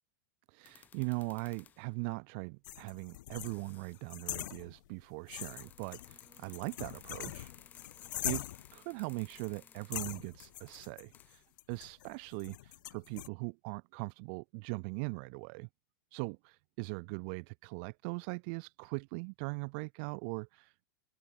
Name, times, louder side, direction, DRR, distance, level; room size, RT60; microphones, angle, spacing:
voice 1, 0.5-7.5 8.2-15.7 16.1-20.9, right 37 dB, 30° right, 0.3 m, -40 dB
sound 1, 0.6-1.9 2.9-3.0 3.3-4.0 5.4-11.5, left 9 dB, 15° left, 2.5 m, -59 dB
sound 2, 2.6-5.0 5.3-8.8 9.4-9.5 9.9-13.3, left 15 dB, 65° left, 0.4 m, -43 dB
Singing, 5.6-10.5, right 2 dB, 5° right, 7.6 m, -69 dB
supercardioid pair, 180°, 11 cm